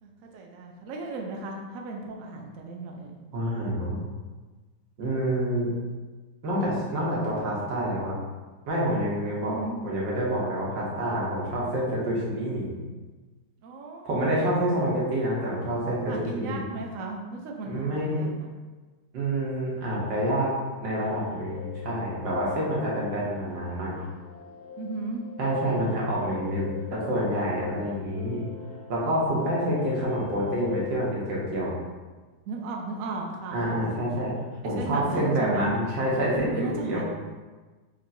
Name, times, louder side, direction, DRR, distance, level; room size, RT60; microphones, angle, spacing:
voice 1, 0.0-3.2 9.4-9.8 13.6-14.1 16.1-18.5 24.8-25.2 32.5-33.7 34.7-35.7 36.5-37.0, right 3 dB, 70° right, 1 dB, 0.8 m, -35 dB
voice 2, 3.3-4.0 5.0-5.7 6.4-8.1 8.7-9.6 9.8-12.7 14.1-16.6 17.7-18.2 19.1-20.5 20.8-24.0 25.4-28.4 28.9-31.7 33.5-34.3 34.6-37.0, right 1 dB, 85° right, -5 dB, 1.7 m, -27 dB
sound 1, 20.9-31.0, left 9 dB, 65° left, 1.2 m, -42 dB
4.4 x 3.1 x 2.6 m, 1.3 s
omnidirectional pair, 2.0 m